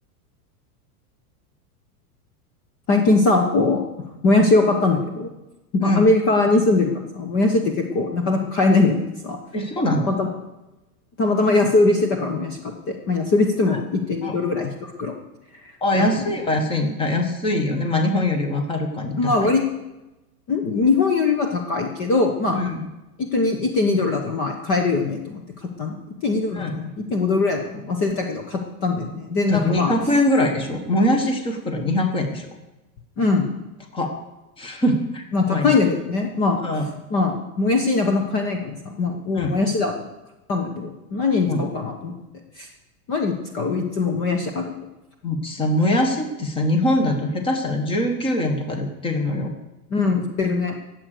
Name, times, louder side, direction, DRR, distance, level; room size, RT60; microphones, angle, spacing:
voice 1, 2.9-3.8 4.2-5.3 5.7-9.4 10.1-10.3 11.2-15.1 15.6-16.2 19.2-19.6 20.5-22.6 23.2-26.0 26.2-29.9 33.2-33.5 35.3-36.6 37.1-39.9 40.5-42.2 42.6-42.7 43.1-44.7 49.9-50.7, left 3 dB, 30° left, 3 dB, 1.2 m, -21 dB
voice 2, 9.5-10.1 14.2-14.4 15.8-19.5 22.5-22.8 26.5-26.7 29.5-32.5 33.9-34.2 34.6-35.2 35.5-35.7 36.6-36.9 39.3-39.6 41.5-41.6 45.2-49.5, left 1 dB, 10° left, 4 dB, 1.4 m, -22 dB
19.5 x 7.8 x 6.6 m, 1.0 s
supercardioid pair, 160°, 47 cm